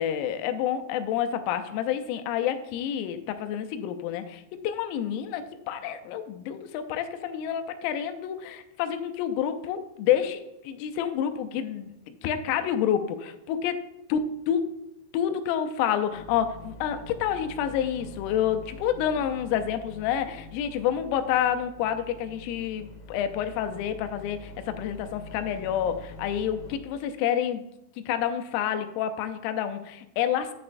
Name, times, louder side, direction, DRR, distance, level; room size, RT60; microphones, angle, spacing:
voice 1, 0.0-13.7 14.1-14.2 14.5-14.7 15.1-27.6 28.1-30.5, left 9 dB, 85° left, 8 dB, 3.4 m, -28 dB
sound 1, 16.1-26.8, left 1 dB, 65° left, 2.6 m, -45 dB
9.8 x 9.5 x 2.6 m, 0.86 s
omnidirectional pair, 5.9 m